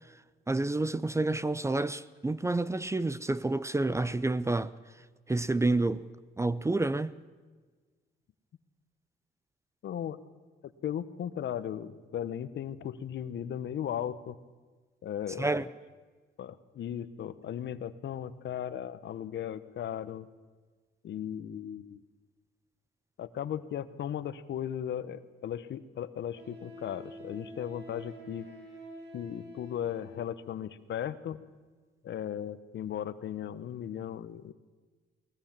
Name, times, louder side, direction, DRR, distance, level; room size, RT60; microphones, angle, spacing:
voice 1, 0.5-4.7 5.3-6.0 6.4-7.1 15.4-15.6, right 2 dB, 15° right, 0.6 m, -29 dB
voice 2, 9.8-10.2 10.6-14.4 15.0-15.6 16.4-20.3 21.0-22.0 23.2-28.5 29.1-31.4 32.0-34.5, left 10 dB, 65° left, 1.1 m, -37 dB
Wind instrument woodwind instrument, 25.1-25.2 26.3-30.4, equal, 60° right, 6.7 m, -47 dB
20.5 x 20.5 x 7.5 m
cardioid pair, 90°, 20 cm